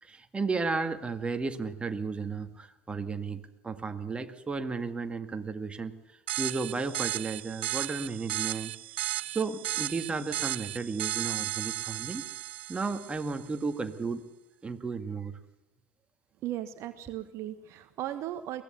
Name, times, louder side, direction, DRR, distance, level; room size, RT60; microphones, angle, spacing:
voice 1, 0.0-5.9 6.4-8.7 9.3-12.2 12.7-14.2 14.6-15.4, right 4 dB, 15° right, 7 dB, 2.0 m, -33 dB
sound 1, 6.3-13.4, right 15 dB, 70° right, 0.6 m, -35 dB
voice 2, 16.4-18.6, right 13 dB, 50° right, 10 dB, 1.3 m, -36 dB
23.0 x 17.0 x 6.9 m, 0.92 s
figure-of-eight pair, 70°, 6 cm